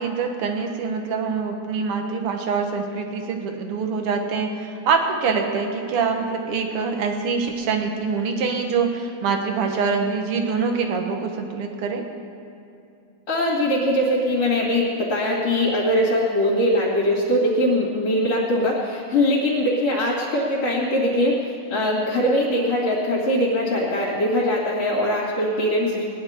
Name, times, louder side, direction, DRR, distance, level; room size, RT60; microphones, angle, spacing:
voice 1, 0.0-12.0, right 5 dB, 55° right, 4 dB, 1.8 m, -24 dB
voice 2, 13.3-21.4 21.7-26.1, left 1 dB, 60° left, -7 dB, 3.2 m, -21 dB
19.5 x 10.5 x 4.4 m, 2.6 s
omnidirectional pair, 3.5 m